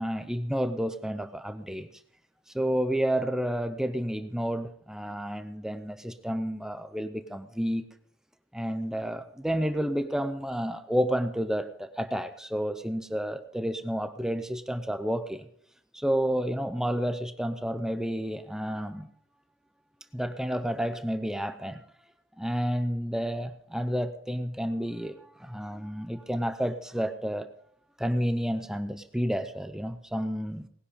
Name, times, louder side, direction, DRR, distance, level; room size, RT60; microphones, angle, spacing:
voice 1, 0.0-1.9 2.5-7.8 8.5-15.5 15.9-19.1 20.1-21.8 22.4-27.5 28.0-30.7, equal, 5° right, 9 dB, 0.6 m, -30 dB
19.0 x 10.5 x 5.1 m, 0.67 s
head